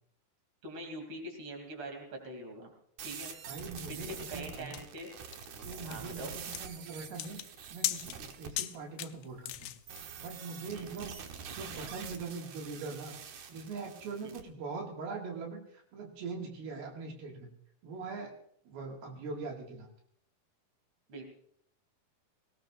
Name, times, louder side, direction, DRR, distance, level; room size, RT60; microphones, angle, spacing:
voice 1, 0.6-2.7 3.0-3.3 3.9-5.1 5.8-6.4 10.7-10.9 14.2-14.3 21.1-21.2, right 1 dB, 35° right, 3 dB, 3.5 m, -43 dB
sound 1, 3.0-8.5 9.9-14.4, right 6 dB, 65° right, 2.1 m, -46 dB
voice 2, 3.5-4.8 5.6-7.4 7.7-9.7 10.2-11.2 11.5-13.2 13.5-17.5 17.8-18.3 18.7-19.9, right 4 dB, 80° right, 0 dB, 3.9 m, -42 dB
sound 2, 3.8-10.0, left 14 dB, 85° left, 1.8 m, -39 dB
20.0 x 18.5 x 2.5 m, 0.66 s
omnidirectional pair, 4.4 m